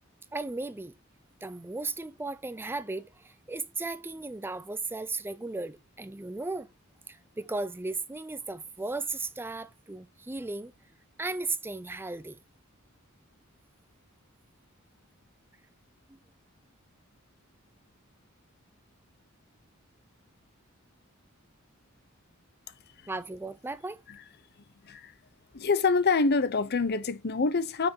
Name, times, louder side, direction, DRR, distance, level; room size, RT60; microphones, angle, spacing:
voice 1, 0.3-1.0 1.4-6.7 7.1-10.7 11.2-12.4 23.1-24.0, right 3 dB, 10° right, 0.4 m, -36 dB
voice 2, 25.5-27.9, left 4 dB, 50° left, 0.7 m, -26 dB
8.9 x 5.8 x 2.8 m
head